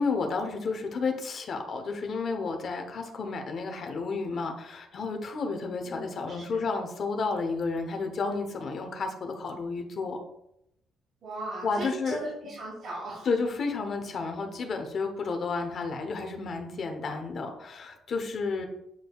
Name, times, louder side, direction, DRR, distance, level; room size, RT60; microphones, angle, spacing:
voice 1, 0.0-10.2 11.6-12.2 13.2-18.7, left 4 dB, 40° left, 4 dB, 0.9 m, -31 dB
voice 2, 11.2-13.3, right 2 dB, 45° right, -7 dB, 2.4 m, -37 dB
8.2 x 4.9 x 2.4 m, 0.78 s
cardioid pair, 170°, 0 cm